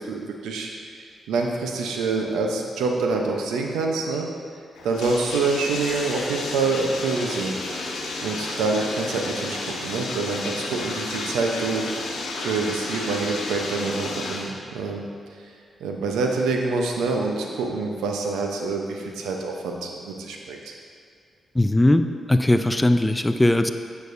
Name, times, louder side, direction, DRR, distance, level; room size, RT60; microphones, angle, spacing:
voice 1, 0.0-4.3 4.8-7.6 8.2-15.0 15.8-20.8, right 3 dB, 90° right, 2 dB, 0.7 m, -26 dB
Bathtub (filling or washing), 4.8-14.5, left 2 dB, 85° left, 0.9 m, -32 dB
voice 2, 21.6-22.0 22.3-23.7, left 1 dB, 15° left, 8 dB, 0.4 m, -19 dB
9.2 x 6.8 x 2.6 m, 2.2 s
supercardioid pair, 55°, 0 cm